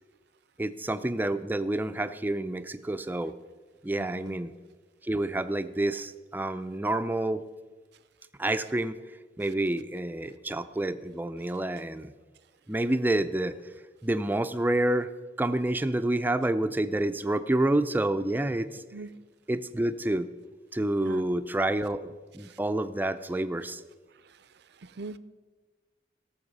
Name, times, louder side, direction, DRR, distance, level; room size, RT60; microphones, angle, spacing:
voice 1, 0.6-3.3 3.8-4.5 5.0-7.4 8.4-9.0 9.4-12.1 12.7-13.6 14.0-15.1 15.4-18.8 19.5-20.3 20.7-23.8, right 1 dB, 10° right, 11 dB, 0.4 m, -28 dB
voice 2, 4.0-4.4 18.9-19.1 21.1-21.3 25.0-25.2, right 3 dB, 65° right, 14 dB, 0.5 m, -40 dB
17.0 x 7.2 x 5.4 m, 1.3 s
head